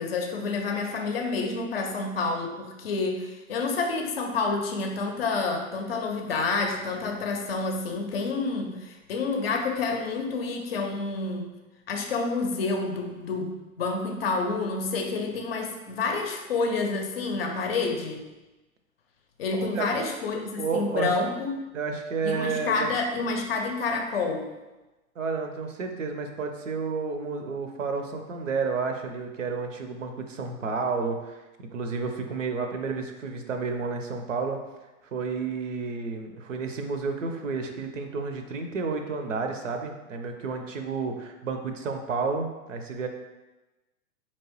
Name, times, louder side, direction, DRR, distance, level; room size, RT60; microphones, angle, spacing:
voice 1, 0.0-11.5 11.9-18.3 19.4-21.5 22.2-24.5, left 3 dB, 45° left, 3 dB, 0.6 m, -29 dB
voice 2, 19.6-21.1 21.7-22.9 25.2-34.6 35.1-43.1, right 4 dB, 60° right, 5 dB, 0.6 m, -31 dB
4.4 x 2.9 x 3.0 m, 1.1 s
figure-of-eight pair, 105°, 43 cm